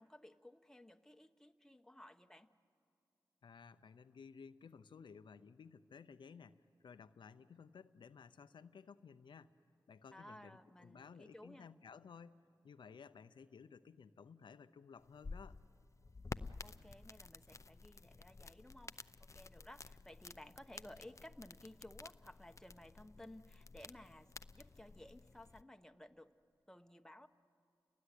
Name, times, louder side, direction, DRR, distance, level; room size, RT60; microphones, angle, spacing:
voice 1, 0.0-2.5 10.1-11.7 16.6-26.3 26.7-27.3, left 1 dB, 5° left, 7 dB, 1.1 m, -57 dB
voice 2, 3.4-9.6 9.9-12.4 12.6-15.6, left 6 dB, 90° left, 11 dB, 0.6 m, -56 dB
sound 1, 15.0-25.6, left 3 dB, 40° left, 0.6 m, -52 dB
30.0 x 19.5 x 9.9 m, 2.5 s
cardioid pair, 55°, 8 cm